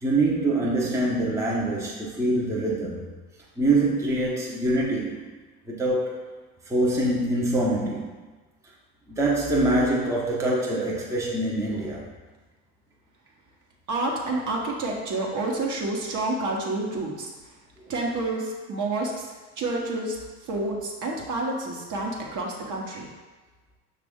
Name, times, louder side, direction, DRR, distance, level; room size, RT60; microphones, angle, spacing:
voice 1, 0.0-3.0 3.6-5.3 5.7-6.2 6.7-8.2 9.1-12.1, right 2 dB, 5° right, -4 dB, 0.8 m, -24 dB
voice 2, 13.9-17.5 17.9-23.1, right 2 dB, 40° right, -1 dB, 1.1 m, -29 dB
5.9 x 2.5 x 3.6 m, 1.3 s
hypercardioid pair, 70°, 45 cm